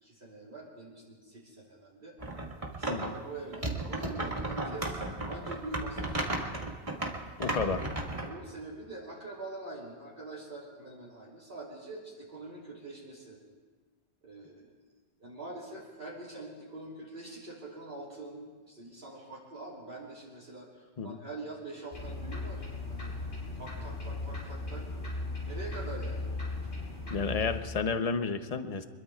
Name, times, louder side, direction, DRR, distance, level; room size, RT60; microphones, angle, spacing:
voice 1, 0.0-2.2 2.8-6.3 8.2-13.4 14.2-14.7 15.2-23.1 23.5-24.9 25.5-26.2, right 2 dB, 50° right, -6 dB, 3.3 m, -44 dB
sound 1, 2.2-3.1 3.5-8.3, right 2 dB, 30° right, 1.8 m, -34 dB
voice 2, 7.4-7.9 21.0-21.2 27.1-28.9, left 5 dB, 35° left, 8 dB, 0.8 m, -31 dB
sound 2, 21.9-27.6, left 2 dB, 70° left, 6.6 m, -37 dB
25.5 x 22.0 x 2.4 m, 1.4 s
omnidirectional pair, 1.2 m